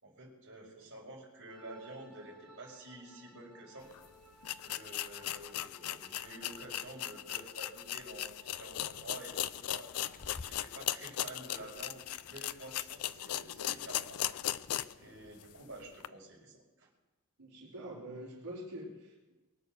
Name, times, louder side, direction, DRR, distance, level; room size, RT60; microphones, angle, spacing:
voice 1, 0.0-3.9 4.6-9.9 10.4-12.0 12.3-14.2 15.0-16.9, right 2 dB, 55° right, -3 dB, 5.2 m, -49 dB
sound 1, 1.5-13.1, right 1 dB, ahead, 3.9 m, -63 dB
sound 2, 3.9-4.0 4.4-15.0 15.4-15.5 16.0-16.1, left 12 dB, 80° left, 0.5 m, -38 dB
Bird, 8.6-15.7, left 3 dB, 40° left, 0.8 m, -57 dB
voice 2, 17.4-19.3, right 1 dB, 85° right, -6 dB, 3.8 m, -45 dB
22.5 x 8.5 x 6.6 m, 1.2 s
head